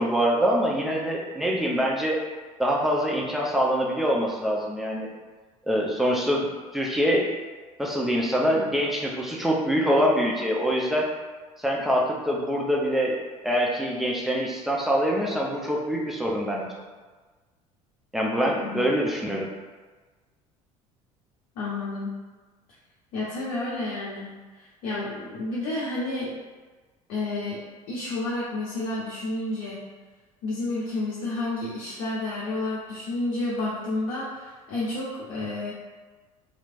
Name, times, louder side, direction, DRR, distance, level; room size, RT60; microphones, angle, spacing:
voice 1, 0.0-2.2 2.6-5.1 5.7-6.5 6.7-7.3 7.8-11.1 11.6-16.7 18.1-19.5, equal, ahead, -3 dB, 0.7 m, -24 dB
voice 2, 18.4-18.8 21.6-22.1 23.1-26.3 27.1-27.6 27.9-29.8 30.4-35.7, left 2 dB, 55° left, -7 dB, 0.8 m, -30 dB
3.2 x 3.1 x 2.5 m, 1.3 s
figure-of-eight pair, 60°, 18 cm